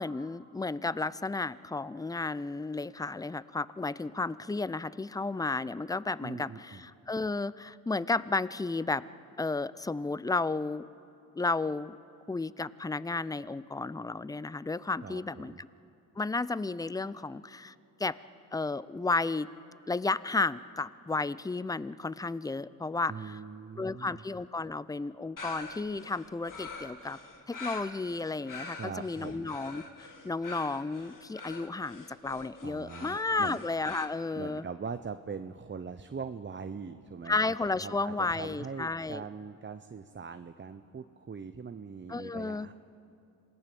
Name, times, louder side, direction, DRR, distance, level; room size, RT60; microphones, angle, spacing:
voice 1, 0.0-9.0 9.4-10.8 11.4-11.9 12.3-15.7 16.2-17.7 18.0-18.2 18.5-19.5 19.9-23.4 23.8-27.2 27.5-29.8 30.2-34.6 37.3-39.2 42.1-42.7, left 3 dB, 10° left, 18 dB, 0.5 m, -33 dB
voice 2, 6.2-6.8 15.0-15.6 23.1-24.2 28.7-29.6 32.6-33.6 34.4-37.5 37.8-42.7, right 5 dB, 30° right, 9 dB, 0.9 m, -41 dB
sound 1, 25.4-34.1, left 3 dB, 55° left, 2.5 m, -45 dB
27.0 x 18.5 x 7.0 m, 2.7 s
supercardioid pair, 55°, 39 cm